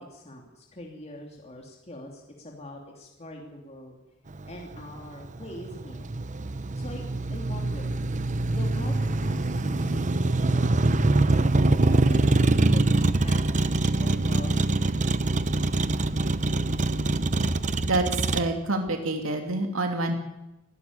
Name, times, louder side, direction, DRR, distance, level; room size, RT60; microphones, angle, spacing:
voice 1, 0.0-3.9 4.5-6.0 6.8-7.0 7.3-8.0 8.5-10.9 11.6-14.8, left 1 dB, 30° left, 0 dB, 2.8 m, -42 dB
Motor vehicle (road), 4.3-18.4, right 2 dB, 35° right, 0.9 m, -24 dB
voice 2, 17.9-20.1, right 2 dB, 90° right, 4 dB, 2.9 m, -27 dB
25.5 x 12.5 x 9.8 m, 0.97 s
head